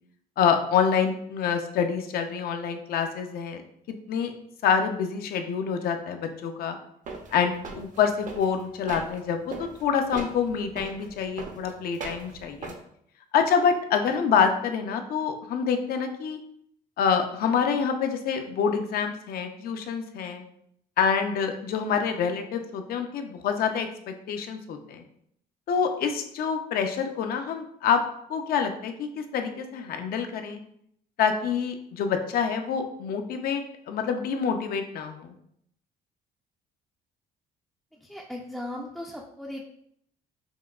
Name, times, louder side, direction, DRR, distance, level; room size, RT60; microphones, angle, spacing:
voice 1, 0.4-3.6 4.1-4.3 4.6-6.8 7.3-9.4 9.8-12.7 13.3-16.4 17.0-20.4 21.0-23.9 24.3-25.0 25.7-28.0 28.3-30.6 31.2-35.3, left 6 dB, 65° left, 6 dB, 0.5 m, -26 dB
sound 1, 7.1-9.2 9.5-12.7, right 3 dB, 50° right, 0.6 m, -39 dB
voice 2, 37.9-39.6, left 1 dB, ahead, -1 dB, 0.4 m, -37 dB
5.4 x 2.3 x 2.3 m, 0.70 s
cardioid pair, 110°, 17 cm